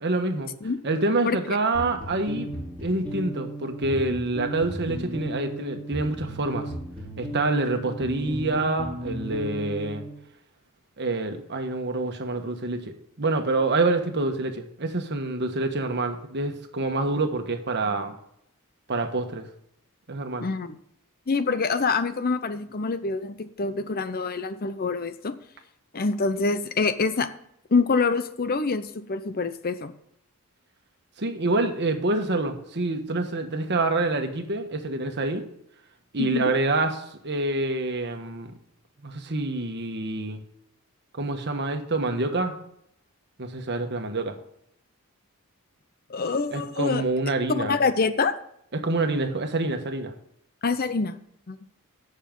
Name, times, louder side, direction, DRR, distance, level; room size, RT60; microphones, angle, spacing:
voice 1, 0.0-0.5 0.8-2.5 2.8-6.7 7.2-10.0 11.0-18.1 18.9-19.4 20.1-20.5 31.2-35.4 36.1-37.0 37.2-38.5 39.0-40.4 41.1-42.5 43.4-44.3 46.5-47.8 48.7-50.1, right 2 dB, 50° right, 6 dB, 1.3 m, -27 dB
voice 2, 1.2-1.6 20.4-20.8 21.3-25.4 25.9-27.3 27.7-29.9 36.2-36.5 46.1-47.0 47.5-48.4 50.6-51.2 51.5-51.6, left 4 dB, 40° left, 12 dB, 0.6 m, -26 dB
sound 1, 1.7-10.2, equal, 5° left, 4.5 m, -35 dB
16.5 x 6.5 x 3.8 m, 0.74 s
head